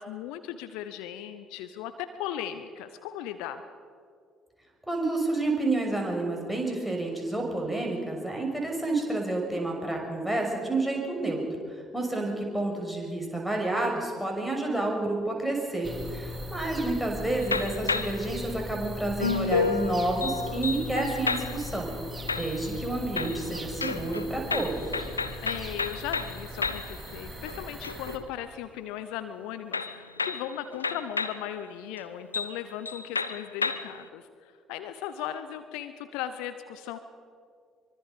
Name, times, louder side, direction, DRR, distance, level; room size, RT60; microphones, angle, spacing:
voice 1, 0.0-3.6 25.4-37.0, left 10 dB, 65° left, 10 dB, 0.9 m, -37 dB
voice 2, 4.9-11.4 11.7-21.9 22.4-24.9, right 2 dB, ahead, 2 dB, 6.5 m, -29 dB
sound 1, 15.8-28.2, left 1 dB, 20° right, 2.8 m, -39 dB
sound 2, 17.4-18.3 19.2-21.8 22.3-22.9 23.2-27.0 27.3-28.3 29.7-31.5 32.0-32.1 32.3-32.6 32.8-34.0, left 4 dB, 90° left, 0.5 m, -31 dB
24.0 x 23.5 x 5.4 m, 2.2 s
figure-of-eight pair, 50°, 0 cm